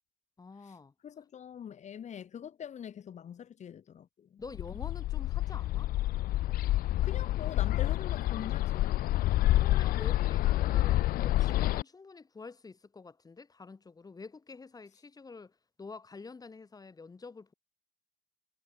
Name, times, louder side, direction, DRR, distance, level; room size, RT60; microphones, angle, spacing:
voice 1, 0.4-0.9 4.4-5.9 9.5-17.5, left 4 dB, 20° left, 1.7 m, -48 dB
voice 2, 1.0-4.4 7.0-9.2, left 8 dB, 45° left, 1.7 m, -44 dB
Bird, 4.5-11.8, left 15 dB, 60° left, 0.4 m, -28 dB
cardioid pair, 110°, 17 cm